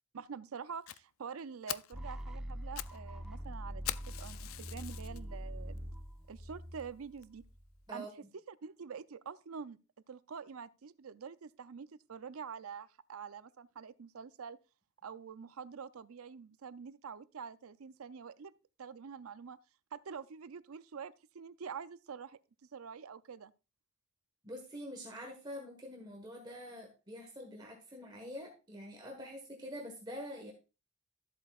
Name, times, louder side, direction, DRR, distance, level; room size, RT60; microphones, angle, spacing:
voice 1, 0.1-3.8 4.2-5.9 6.3-7.4 7.9-8.1 8.5-9.8 10.1-14.6 15.0-18.5 18.8-19.6 19.9-22.4 22.7-23.5, right 6 dB, 90° right, 0.5 m, -46 dB
Fire, 0.9-1.0 1.4-1.5 1.7-2.0 2.5-3.0 3.2-3.3 3.8-5.2 5.8-5.9 6.4-6.5 6.8-6.9 7.2-7.3, left 14 dB, 70° left, 0.3 m, -41 dB
sound 1, 1.9-7.8, equal, 5° right, 0.9 m, -44 dB
voice 2, 24.4-30.5, equal, 20° right, 1.4 m, -46 dB
13.0 x 7.9 x 2.4 m
head